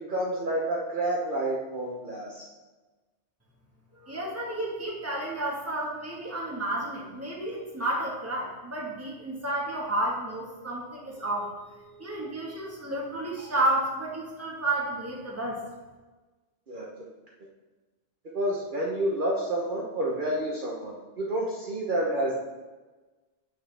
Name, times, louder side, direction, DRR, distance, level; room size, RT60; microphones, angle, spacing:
voice 1, 0.1-2.5 16.7-16.9 18.3-22.4, right 1 dB, 50° right, -4 dB, 1.1 m, -29 dB
voice 2, 3.9-15.6, right 1 dB, 15° right, -4 dB, 1.7 m, -31 dB
8.3 x 6.2 x 3.5 m, 1.2 s
omnidirectional pair, 1.1 m